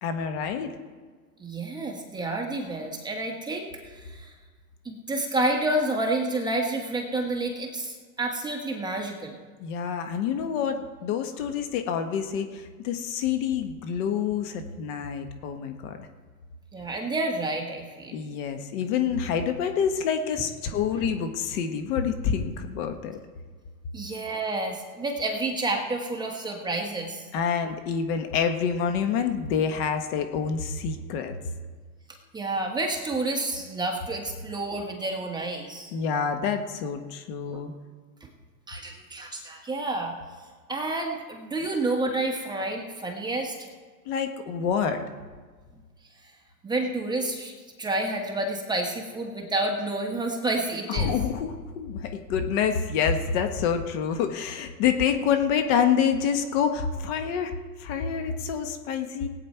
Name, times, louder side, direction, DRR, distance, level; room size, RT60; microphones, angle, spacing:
voice 1, 0.0-0.7 9.6-16.1 18.1-23.2 27.3-31.4 35.9-37.7 44.0-45.0 50.9-57.5 57.8-59.3, left 7 dB, 50° left, 7 dB, 1.3 m, -27 dB
voice 2, 1.4-4.3 4.8-9.3 16.7-18.1 21.0-21.1 23.9-27.2 32.3-35.9 37.5-37.6 38.7-40.1 40.7-43.6 46.6-47.5 47.8-51.1, right 2 dB, 10° right, 1 dB, 1.3 m, -29 dB
18.0 x 8.9 x 4.5 m, 1.5 s
supercardioid pair, 135°, 48 cm